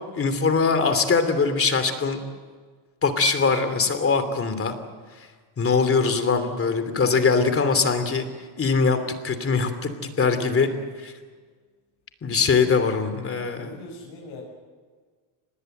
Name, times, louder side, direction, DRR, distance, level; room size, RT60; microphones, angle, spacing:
voice 1, 0.1-2.2 3.0-4.8 5.6-8.3 8.6-9.0 9.2-10.7 11.0-11.1 12.2-13.7, left 5 dB, 25° left, 9 dB, 2.9 m, -22 dB
voice 2, 13.5-14.4, left 3 dB, 60° left, -3 dB, 6.6 m, -41 dB
25.5 x 20.0 x 7.8 m, 1.5 s
cardioid pair, 120°, 48 cm